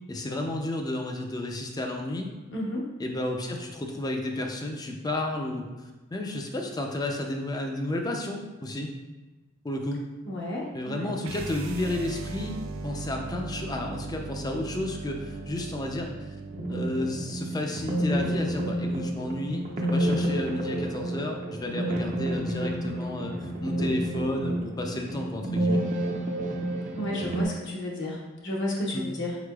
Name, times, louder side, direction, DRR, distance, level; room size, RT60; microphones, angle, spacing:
voice 1, 0.1-2.3 3.0-5.7 6.1-8.9 9.6-10.0 10.7-12.6 12.8-16.4 16.7-25.8 28.9-29.1, left 1 dB, 20° left, 2 dB, 0.4 m, -32 dB
voice 2, 2.5-2.9 10.3-11.1 26.9-29.4, left 1 dB, 60° left, -3 dB, 0.8 m, -32 dB
sound 1, 11.2-17.4, right 3 dB, 85° right, 0.4 m, -38 dB
sound 2, 16.5-27.4, right 1 dB, 35° right, 0.5 m, -29 dB
4.8 x 4.4 x 2.3 m, 1.2 s
head